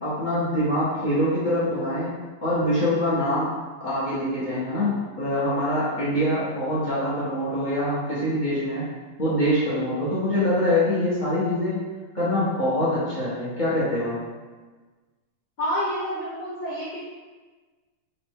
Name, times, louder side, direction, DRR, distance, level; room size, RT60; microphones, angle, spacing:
voice 1, 0.0-2.1 2.4-3.5 3.8-4.9 5.2-8.9 9.2-11.8 12.1-14.2, left 1 dB, 30° left, -10 dB, 1.0 m, -24 dB
voice 2, 15.6-17.0, equal, 55° left, -10 dB, 1.4 m, -28 dB
4.0 x 2.5 x 3.6 m, 1.3 s
omnidirectional pair, 2.3 m